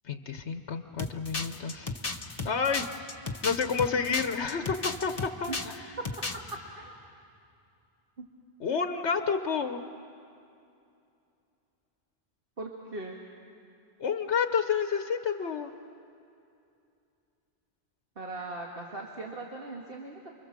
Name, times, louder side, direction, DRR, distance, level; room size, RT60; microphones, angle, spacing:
voice 1, 0.0-1.9 2.4-2.9 3.1-5.9 8.6-9.8 14.0-15.7, left 6 dB, 85° left, 7 dB, 1.2 m, -30 dB
sound 1, 1.0-5.8 6.0-6.5, left 3 dB, 35° left, 1.2 m, -34 dB
voice 2, 6.3-6.9 8.2-8.3 12.6-13.2 18.2-20.3, right 2 dB, 55° right, -1 dB, 2.0 m, -39 dB
29.0 x 23.5 x 7.4 m, 2.6 s
omnidirectional pair, 1.1 m